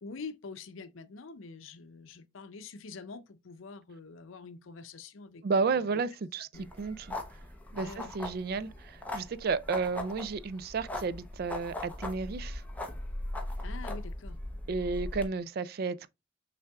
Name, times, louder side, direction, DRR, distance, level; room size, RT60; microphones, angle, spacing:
voice 1, 0.0-5.9 6.5-6.7 7.7-8.2 13.6-14.4, left 4 dB, 80° left, 0.6 m, -46 dB
voice 2, 5.4-7.1 7.7-12.6 14.7-16.1, right 4 dB, 50° right, 0.3 m, -32 dB
sound 1, 6.5-15.3, left 1 dB, 10° left, 0.7 m, -39 dB
5.6 x 3.4 x 2.3 m
head